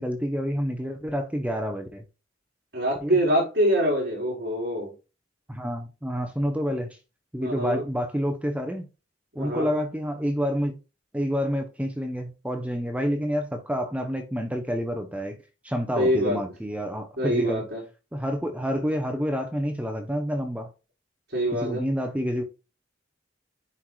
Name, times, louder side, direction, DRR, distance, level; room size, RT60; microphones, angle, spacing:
voice 1, 0.0-2.0 3.0-3.2 5.5-7.0 7.3-8.9 9.4-10.8 11.1-15.4 15.6-17.6 18.1-20.7 21.5-22.4, equal, 5° right, 0.7 m, -28 dB
voice 2, 2.7-4.9 7.4-7.8 9.4-9.7 16.0-16.4 17.2-17.8 21.3-21.8, equal, 60° right, 4.1 m, -24 dB
9.8 x 4.7 x 2.3 m
head